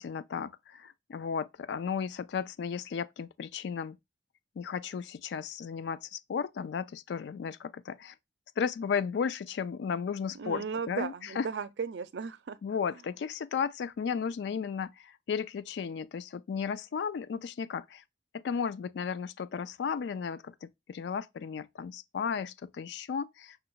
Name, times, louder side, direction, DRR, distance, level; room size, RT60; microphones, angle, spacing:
voice 1, 0.0-4.0 4.6-8.1 8.6-11.5 12.6-18.0 18.3-23.6, left 6 dB, 70° left, 0.3 m, -34 dB
voice 2, 10.3-12.6, right 5 dB, 75° right, 0.4 m, -36 dB
5.7 x 2.2 x 3.8 m
head